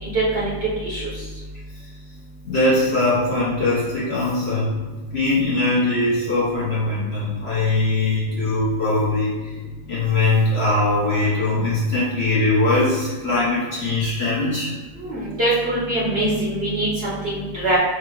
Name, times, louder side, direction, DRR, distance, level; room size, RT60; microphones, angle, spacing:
voice 1, 0.0-1.0 15.0-17.8, right 2 dB, 40° right, -7 dB, 1.1 m, -23 dB
voice 2, 2.4-4.7 5.1-9.5 9.8-14.8, left 2 dB, 45° left, -8 dB, 1.1 m, -21 dB
4.5 x 2.4 x 4.6 m, 1.3 s
omnidirectional pair, 1.9 m